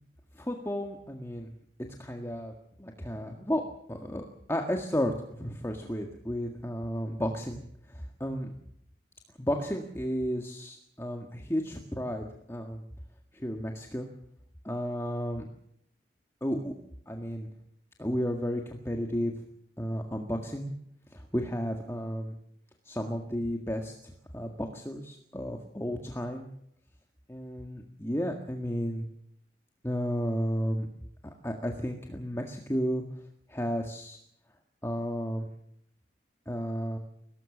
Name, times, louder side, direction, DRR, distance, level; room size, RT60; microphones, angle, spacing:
voice 1, 0.4-1.5 2.0-2.5 2.8-3.6 3.9-8.5 9.4-12.8 13.3-14.1 14.6-15.5 16.4-16.7 17.1-17.5 18.0-19.3 19.8-20.7 21.1-22.4 22.9-26.5 27.3-29.1 29.8-30.9 31.4-33.0 33.5-34.2 34.8-35.5 36.5-37.0, equal, 15° left, 2 dB, 1.7 m, -33 dB
23.0 x 18.0 x 7.3 m, 0.73 s
head